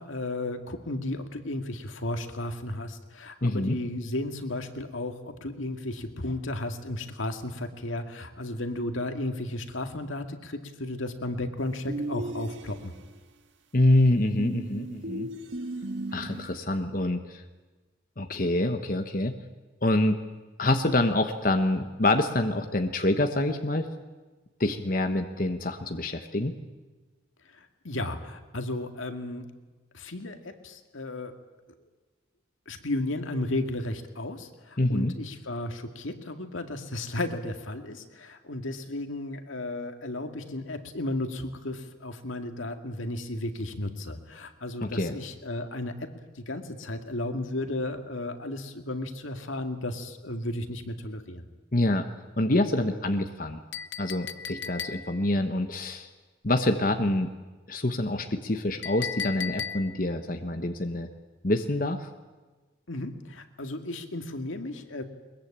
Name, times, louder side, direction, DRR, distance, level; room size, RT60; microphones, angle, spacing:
voice 1, 0.0-12.9 27.5-29.5 29.9-31.4 32.7-51.5 62.9-65.0, left 1 dB, 85° left, 6 dB, 2.2 m, -34 dB
voice 2, 3.4-3.8 13.7-15.3 16.1-17.4 18.2-19.4 19.8-20.2 20.6-23.9 24.6-26.5 34.8-35.1 44.8-45.1 51.7-52.1 52.4-53.6 54.0-56.1 56.4-57.3 57.7-61.1 61.4-62.1, left 1 dB, 45° left, 6 dB, 1.2 m, -26 dB
sound 1, 11.9-13.1 14.4-16.6, right 1 dB, 75° right, 1.6 m, -36 dB
Chink clink, 53.7-55.3 58.8-60.1, left 7 dB, 65° left, 0.8 m, -36 dB
22.0 x 21.5 x 8.8 m, 1.3 s
head